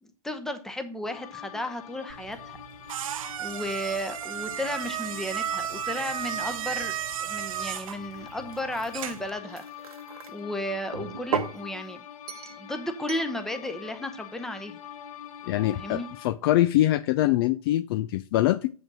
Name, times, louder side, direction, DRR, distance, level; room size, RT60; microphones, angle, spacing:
voice 1, 0.0-2.6 3.4-6.9 7.2-9.6 10.3-12.0 12.6-14.8 15.7-16.1, left 1 dB, ahead, 7 dB, 0.8 m, -34 dB
sound 1, 1.1-16.3, left 10 dB, 70° left, 1.0 m, -44 dB
sound 2, 2.1-9.4, right 10 dB, 65° right, 0.6 m, -34 dB
sound 3, 8.0-10.3 10.9-11.6 12.3-12.6 13.1-13.3, right 6 dB, 85° right, 1.1 m, -35 dB
voice 2, 15.5-18.7, left 14 dB, 40° left, 14 dB, 0.4 m, -24 dB
7.6 x 5.1 x 6.1 m, 0.38 s
hypercardioid pair, 125°, 19 cm